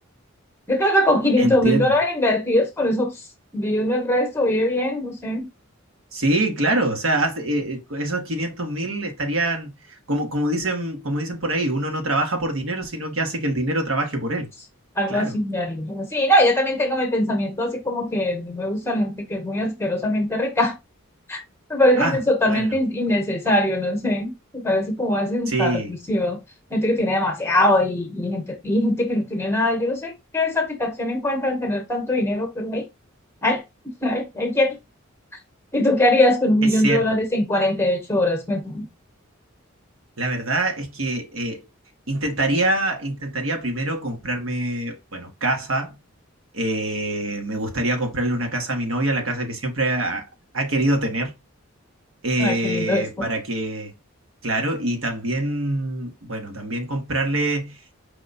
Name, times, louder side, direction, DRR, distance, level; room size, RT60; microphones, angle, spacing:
voice 1, 0.7-3.1 3.5-5.5 15.0-20.7 21.3-21.4 21.7-26.4 26.7-32.8 33.4-33.6 34.0-34.7 35.7-38.9 52.4-53.0, left 1 dB, 10° left, 1.0 m, -22 dB
voice 2, 1.4-1.9 6.1-14.5 15.1-15.4 22.0-22.2 22.4-22.7 25.5-25.9 36.6-37.2 40.2-41.6 42.1-46.0 46.5-50.2 50.5-51.3 52.2-53.9 54.4-57.8, right 1 dB, 75° right, 1.2 m, -25 dB
4.9 x 2.2 x 4.0 m
head